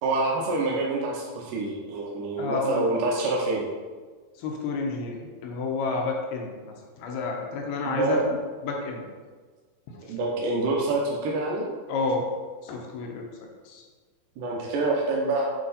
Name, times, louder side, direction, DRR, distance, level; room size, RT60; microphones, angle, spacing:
voice 1, 0.0-3.6 7.9-8.2 10.0-11.7 14.4-15.5, right 2 dB, 75° right, -3 dB, 2.0 m, -26 dB
voice 2, 2.4-2.9 4.4-9.1 9.9-10.0 11.9-12.2 12.6-13.8, left 3 dB, 80° left, 0 dB, 2.6 m, -30 dB
7.6 x 3.4 x 4.1 m, 1.4 s
omnidirectional pair, 4.7 m